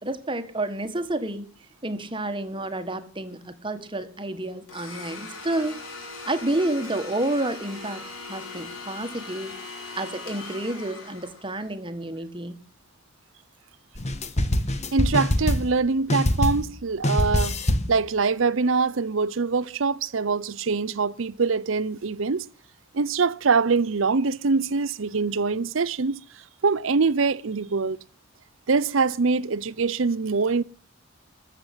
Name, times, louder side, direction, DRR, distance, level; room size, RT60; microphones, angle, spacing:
voice 1, 0.0-1.5 1.8-5.8 6.3-9.6 10.0-12.6, right 1 dB, 25° right, 1.6 m, -30 dB
Domestic sounds home sounds, 4.7-11.7, left 3 dB, 85° left, 6.0 m, -40 dB
sound 1, 14.0-15.8 16.1-16.8 17.0-18.0, left 1 dB, 35° left, 1.4 m, -24 dB
voice 2, 14.9-17.6 17.9-22.5 22.9-26.2 26.6-28.0 28.7-30.6, right 4 dB, 75° right, 0.7 m, -24 dB
14.0 x 7.6 x 9.7 m
head